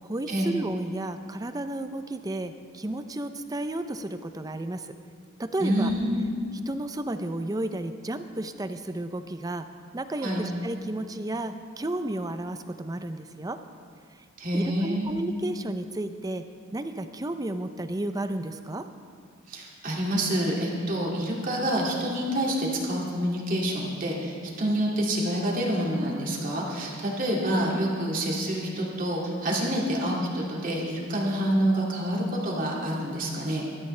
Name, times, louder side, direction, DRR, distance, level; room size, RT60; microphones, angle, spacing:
voice 1, 0.0-4.9 5.4-5.9 6.7-9.6 9.9-13.6 14.5-16.4 16.7-18.9, right 1 dB, 15° right, 9 dB, 0.5 m, -32 dB
voice 2, 5.6-6.2 10.2-10.5 14.4-15.1 19.5-33.7, equal, 40° right, -3 dB, 2.3 m, -27 dB
20.5 x 13.0 x 3.3 m, 2.2 s
head